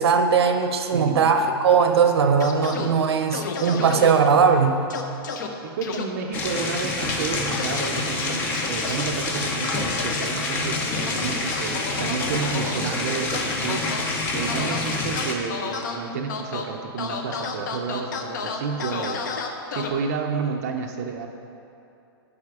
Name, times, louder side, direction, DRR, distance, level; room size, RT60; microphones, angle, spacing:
voice 1, 0.0-4.9, right 6 dB, 85° right, 7 dB, 0.9 m, -19 dB
voice 2, 0.9-1.3 5.6-13.9 14.3-19.5 19.7-21.3, right 5 dB, 40° right, 2 dB, 0.5 m, -30 dB
sound 1, 2.4-2.9 3.3-4.1 4.9-5.5 5.8-6.0 7.5-7.9 8.2-9.1 9.7-10.2 11.1-12.8 13.3-14.0 14.5-14.8 15.2-16.0 16.3-16.6 17.0-19.9, left 6 dB, 50° left, 0.7 m, -31 dB
sound 2, 6.3-15.3, left 3 dB, 15° left, 0.5 m, -27 dB
12.0 x 5.0 x 4.8 m, 2.7 s
hypercardioid pair, 175°, 13 cm